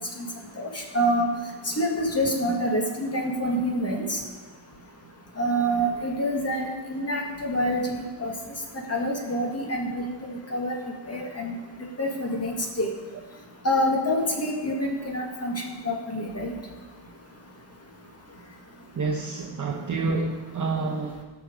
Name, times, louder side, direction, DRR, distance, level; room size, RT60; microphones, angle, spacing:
voice 1, 0.6-1.3 1.7-4.2 5.4-6.6 6.9-8.3 8.9-10.1 10.5-10.7 11.1-11.6 12.0-12.9 13.6-16.5, equal, 30° left, 0 dB, 1.8 m, -26 dB
voice 2, 18.9-21.2, right 3 dB, 40° right, -1 dB, 0.9 m, -28 dB
17.0 x 6.1 x 5.1 m, 1.3 s
wide cardioid pair, 150°, 47 cm